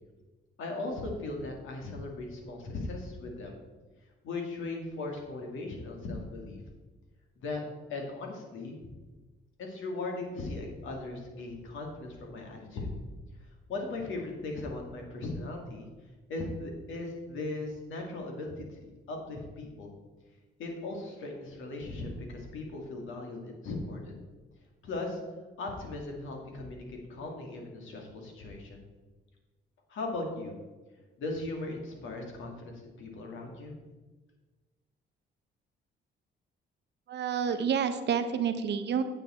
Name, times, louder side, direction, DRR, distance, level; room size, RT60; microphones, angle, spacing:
voice 1, 0.6-3.6 4.2-6.6 7.4-7.6 7.9-8.8 9.6-12.9 13.7-15.9 16.3-19.9 20.6-24.1 24.8-25.2 25.6-28.8 29.9-30.6 31.2-33.7, left 2 dB, 80° left, 1 dB, 2.1 m, -38 dB
voice 2, 37.1-39.0, right 7 dB, 60° right, 9 dB, 0.8 m, -29 dB
9.0 x 7.1 x 4.3 m, 1.3 s
cardioid pair, 90°, 20 cm